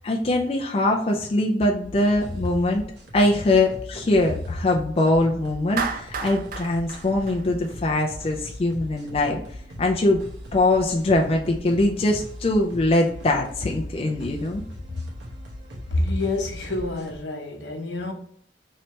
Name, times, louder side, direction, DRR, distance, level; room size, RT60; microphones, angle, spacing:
voice 1, 0.0-2.8 3.1-9.4 9.8-10.2 10.5-14.6, left 2 dB, 30° left, 0.4 m, -22 dB
sound 1, 1.8-17.2, left 1 dB, 80° right, 1.0 m, -40 dB
Clapping, 5.8-8.1, right 5 dB, 50° right, 0.4 m, -32 dB
voice 2, 15.9-18.1, left 2 dB, 75° left, 0.9 m, -27 dB
3.2 x 2.8 x 4.3 m
head